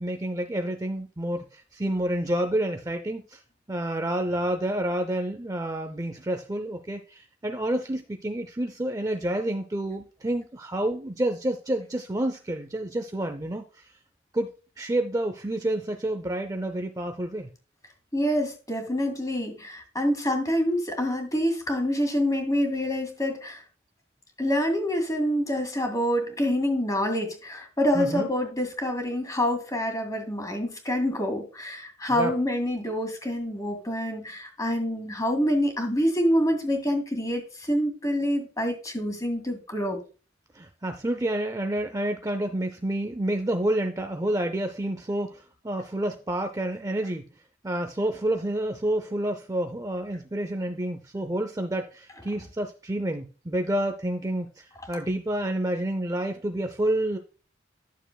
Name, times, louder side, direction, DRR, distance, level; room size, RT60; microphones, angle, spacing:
voice 1, 0.0-3.4 3.7-13.8 14.3-17.5 27.9-28.3 32.1-32.3 40.5-47.3 47.6-57.2, right 1 dB, 20° right, 6 dB, 0.5 m, -29 dB
voice 2, 18.1-23.6 24.4-40.0, equal, 20° left, 4 dB, 2.0 m, -26 dB
11.0 x 6.9 x 2.3 m, 0.35 s
head